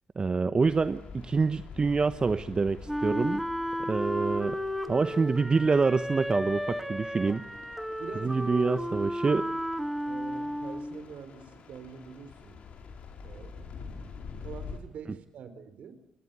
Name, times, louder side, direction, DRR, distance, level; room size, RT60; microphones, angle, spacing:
voice 1, 0.2-3.4 3.8-4.6 4.9-7.4 8.2-9.5, right 4 dB, 35° right, 12 dB, 1.1 m, -26 dB
sound 1, 0.6-14.8, left 5 dB, 65° left, 4.7 m, -47 dB
Wind instrument woodwind instrument, 2.9-11.0, equal, 5° right, 2.2 m, -33 dB
voice 2, 8.0-8.4 10.1-12.6 13.2-13.7 14.4-16.0, right 6 dB, 65° right, 11 dB, 4.1 m, -45 dB
27.5 x 20.5 x 8.2 m, 0.72 s
hypercardioid pair, 50°, 3 cm